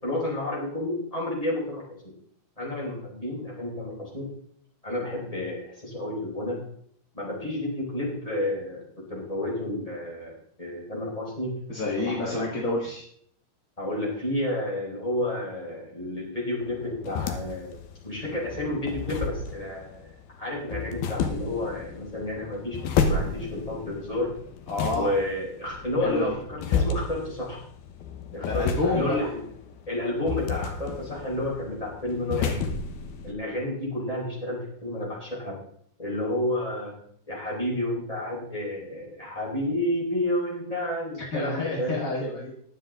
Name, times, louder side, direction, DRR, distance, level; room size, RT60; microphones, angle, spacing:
voice 1, 0.0-2.0 2.6-4.3 4.8-6.6 7.1-11.6 12.0-12.5 13.8-17.8 18.0-20.1 20.4-24.3 24.9-27.6 28.3-29.4 29.9-32.7 33.2-35.6 36.0-36.9 37.3-42.1, left 1 dB, 10° left, -4 dB, 5.0 m, -30 dB
voice 2, 11.7-13.0 24.7-25.1 26.0-26.3 28.5-29.3 41.2-42.5, left 2 dB, 35° left, -4 dB, 1.5 m, -29 dB
sound 1, 16.6-33.3, left 5 dB, 85° left, 3.1 m, -32 dB
21.5 x 7.6 x 3.8 m, 0.65 s
omnidirectional pair, 4.2 m